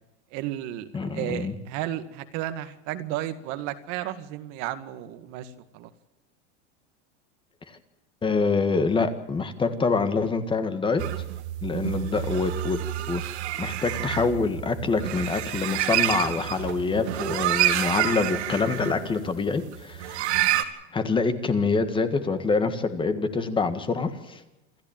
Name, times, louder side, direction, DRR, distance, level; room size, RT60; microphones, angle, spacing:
voice 1, 0.3-5.9, right 13 dB, 50° right, 10 dB, 2.0 m, -33 dB
voice 2, 0.9-1.5 8.2-11.0 11.6-12.8 13.1-13.2 13.6-20.4 20.9-24.4, left 4 dB, 15° left, 9 dB, 1.8 m, -26 dB
sound 1, 11.0-20.6, right 13 dB, 85° right, 2.5 m, -28 dB
27.5 x 13.5 x 8.9 m, 0.96 s
supercardioid pair, 155°, 33 cm